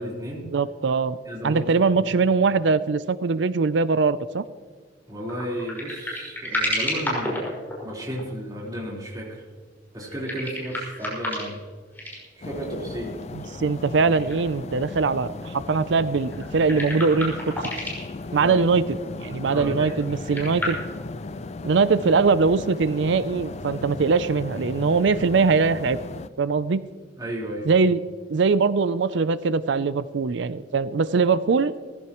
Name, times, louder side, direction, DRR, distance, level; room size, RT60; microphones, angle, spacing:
voice 1, 0.0-0.5 1.3-2.1 5.1-7.5 7.8-9.5 9.9-11.6 12.4-13.1 18.3-18.6 19.4-19.9 20.2-20.7 27.2-27.7, equal, 20° right, -5 dB, 4.0 m, -33 dB
voice 2, 0.5-1.2 1.4-4.4 13.3-17.5 18.3-18.8 19.2-20.8 21.6-26.0 26.4-26.8 27.7-28.0 28.3-31.7, right 4 dB, 70° right, 15 dB, 0.5 m, -22 dB
sound 1, 5.3-8.2 10.0-11.6 11.9-12.2 13.4-13.5 14.1-14.3 14.6-14.7 16.0-18.1 20.0-20.7, left 1 dB, 10° left, 5.4 m, -30 dB
sound 2, 12.4-26.3, left 3 dB, 35° left, 0.5 m, -36 dB
19.0 x 15.5 x 3.0 m, 1.5 s
head